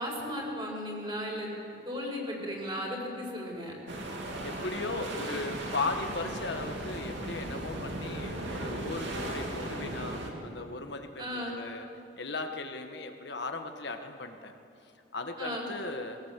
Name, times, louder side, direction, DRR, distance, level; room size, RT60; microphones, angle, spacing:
voice 1, 0.0-3.7 11.2-11.6 15.4-15.7, equal, 25° right, -1 dB, 4.8 m, -35 dB
sound 1, 3.9-10.3, right 1 dB, 70° right, 2.9 m, -37 dB
voice 2, 4.4-11.9 12.2-14.5 15.1-16.2, left 3 dB, 60° left, 6 dB, 1.4 m, -37 dB
21.0 x 18.5 x 7.5 m, 2.7 s
head